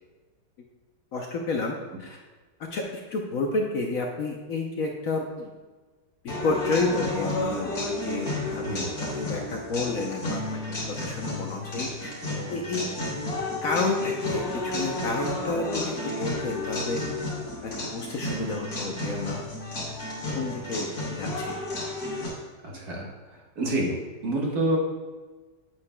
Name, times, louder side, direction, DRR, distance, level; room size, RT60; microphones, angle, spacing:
voice 1, 1.1-1.7 2.0-2.2 2.7-5.5 6.2-10.6 11.0-12.1 12.5-12.9 13.6-17.0 17.6-19.4 20.3-21.6, left 3 dB, 60° left, 1 dB, 1.0 m, -30 dB
sound 1, 6.3-22.3, left 2 dB, 85° left, 3.4 m, -32 dB
voice 2, 8.4-8.9 22.6-24.0 24.2-24.8, right 1 dB, 60° right, -2 dB, 1.9 m, -28 dB
8.7 x 8.0 x 2.2 m, 1.3 s
omnidirectional pair, 1.9 m